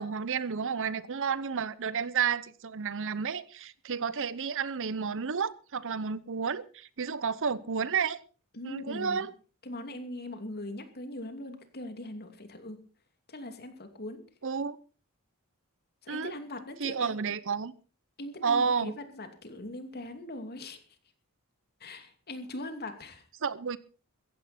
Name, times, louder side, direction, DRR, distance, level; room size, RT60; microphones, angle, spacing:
voice 1, 0.0-8.2 8.6-9.3 14.4-14.8 16.1-16.3 16.8-17.7 18.4-19.0 23.4-23.8, right 6 dB, 60° right, 0.8 m, -31 dB
voice 2, 8.5-9.3 9.6-12.8 13.3-14.2 16.0-17.1 18.2-20.8 21.8-23.2, left 1 dB, 45° left, 2.7 m, -41 dB
15.5 x 15.0 x 4.3 m
head